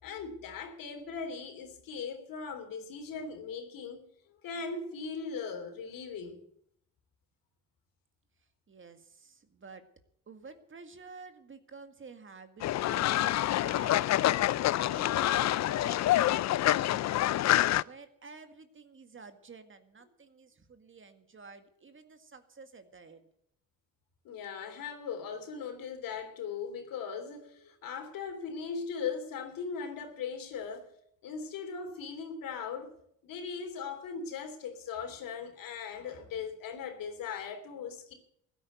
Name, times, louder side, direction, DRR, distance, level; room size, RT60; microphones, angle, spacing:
voice 1, 0.0-4.0 4.3-6.4 24.2-30.9 31.2-32.9 33.2-38.1, left 5 dB, 70° left, 3.3 m, -39 dB
voice 2, 8.7-9.8 10.3-14.0 14.6-17.3 17.7-23.3, right 4 dB, 35° right, 2.0 m, -51 dB
Fowl, 12.6-17.8, left 14 dB, 50° left, 0.5 m, -27 dB
15.5 x 9.5 x 8.1 m
supercardioid pair, 75°, 35 cm